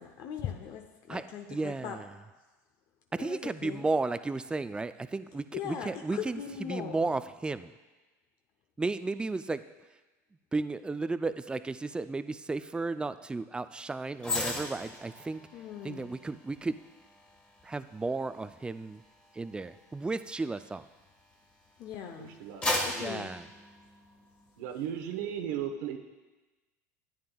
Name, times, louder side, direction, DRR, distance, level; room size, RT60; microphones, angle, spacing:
voice 1, 0.0-2.0 3.2-3.9 5.5-7.2 15.5-16.1 21.8-22.4 22.8-23.4, left 8 dB, 50° left, 4 dB, 0.7 m, -40 dB
voice 2, 1.5-2.0 3.1-7.7 8.8-9.6 10.5-15.5 15.8-16.8 17.6-19.0 19.3-20.9 23.0-23.4, right 3 dB, 10° right, 13 dB, 0.3 m, -34 dB
sound 1, 14.2-21.6 22.1-24.4 24.8-25.0, left 2 dB, 15° left, 1.5 m, -38 dB
voice 3, 22.2-22.7 24.6-26.0, right 9 dB, 75° right, 5 dB, 1.0 m, -35 dB
13.0 x 8.7 x 2.3 m, 1.2 s
supercardioid pair, 95°, 9 cm